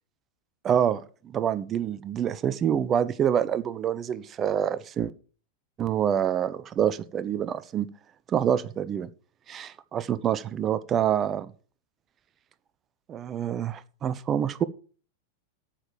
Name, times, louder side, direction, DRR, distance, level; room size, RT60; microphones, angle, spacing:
voice 1, 0.6-5.1 5.8-7.9 8.3-9.1 9.5-11.5 13.1-14.6, right 9 dB, 25° right, 0.7 m, -26 dB
8.9 x 6.7 x 7.2 m
figure-of-eight pair, 90°, 0 cm